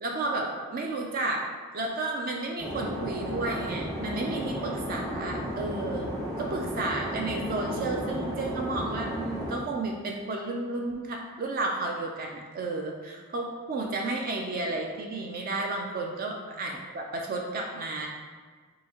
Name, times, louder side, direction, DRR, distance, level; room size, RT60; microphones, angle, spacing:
voice 1, 0.0-1.5 1.7-6.1 6.4-18.1, right 2 dB, 40° right, 1 dB, 0.4 m, -32 dB
sound 1, 2.6-9.6, equal, 15° right, 0.7 m, -34 dB
5.5 x 2.7 x 2.8 m, 1.5 s
head